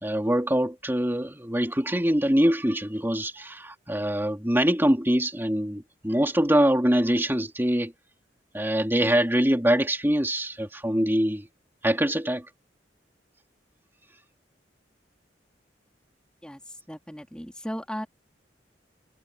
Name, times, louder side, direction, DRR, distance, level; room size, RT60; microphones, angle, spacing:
voice 1, 0.0-7.9 8.5-11.5 11.8-12.4, equal, 10° right, 2.9 m, -24 dB
voice 2, 16.9-18.1, equal, 5° left, 3.7 m, -36 dB
head